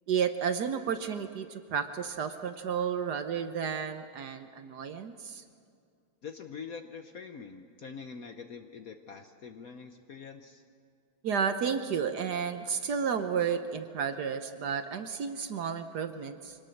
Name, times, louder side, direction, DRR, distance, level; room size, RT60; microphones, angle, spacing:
voice 1, 0.1-5.4 11.2-16.6, right 7 dB, 60° right, 8 dB, 1.2 m, -32 dB
voice 2, 6.2-10.6, left 5 dB, 55° left, 6 dB, 1.0 m, -44 dB
25.0 x 19.0 x 6.5 m, 2.4 s
omnidirectional pair, 2.3 m